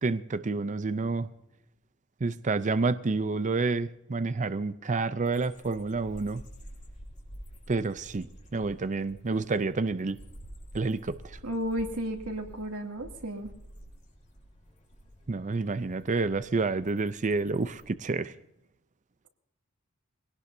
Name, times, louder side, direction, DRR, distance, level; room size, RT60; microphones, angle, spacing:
voice 1, 0.0-1.3 2.2-6.4 7.7-10.2 10.7-11.4 15.3-18.3, right 3 dB, 35° right, 0.5 m, -29 dB
sound 1, 5.2-17.9, equal, 35° left, 2.6 m, -50 dB
voice 2, 11.4-13.5, equal, 80° right, 2.5 m, -33 dB
23.0 x 17.5 x 2.7 m
head